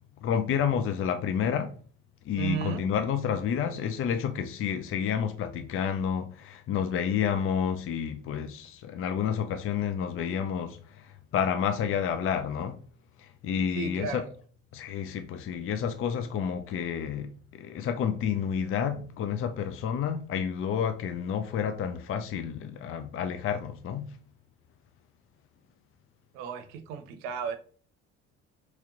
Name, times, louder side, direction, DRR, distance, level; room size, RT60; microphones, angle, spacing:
voice 1, 0.2-1.7 2.3-12.8 13.2-14.2 14.7-24.2, left 8 dB, 45° left, 0.5 m, -30 dB
voice 2, 2.3-2.8 13.7-14.3 26.3-27.6, right 7 dB, 85° right, 0.7 m, -34 dB
3.1 x 2.9 x 3.7 m
supercardioid pair, 75°, 29 cm